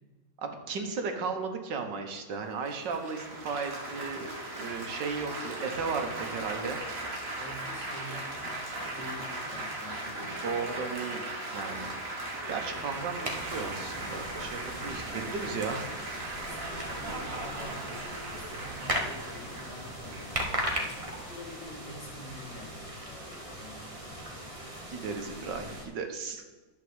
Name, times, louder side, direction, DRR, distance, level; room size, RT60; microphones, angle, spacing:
voice 1, 0.4-4.3 4.6-6.8 10.4-11.9 12.5-15.9 24.9-26.5, right 5 dB, 75° right, 5 dB, 1.8 m, -35 dB
Laughter / Applause / Chatter, 2.6-21.8, right 2 dB, 35° right, 1.6 m, -38 dB
voice 2, 6.2-6.8 7.4-8.4 8.7-10.7 16.4-24.5, left 1 dB, 70° left, 0 dB, 2.7 m, -47 dB
sound 1, 13.2-25.9, right 1 dB, 20° right, 1.3 m, -38 dB
11.0 x 4.6 x 7.9 m, 1.3 s
omnidirectional pair, 1.9 m